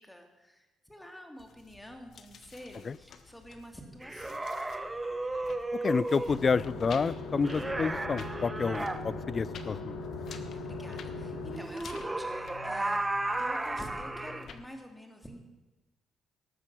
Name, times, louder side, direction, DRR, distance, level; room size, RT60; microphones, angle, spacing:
voice 1, 0.0-4.4 8.6-8.8 10.3-13.0 13.4-15.4, equal, 5° left, 3 dB, 2.5 m, -48 dB
sound 1, 1.4-14.7, left 5 dB, 60° left, 1.2 m, -51 dB
sound 2, 4.0-6.4 7.4-9.0 11.5-14.5, right 2 dB, 15° right, 1.0 m, -34 dB
voice 2, 5.8-10.0, left 5 dB, 40° left, 21 dB, 0.3 m, -29 dB
sound 3, 6.3-11.6, left 3 dB, 80° left, 2.4 m, -39 dB
18.5 x 7.6 x 6.1 m, 1.1 s
cardioid pair, 90°, 0 cm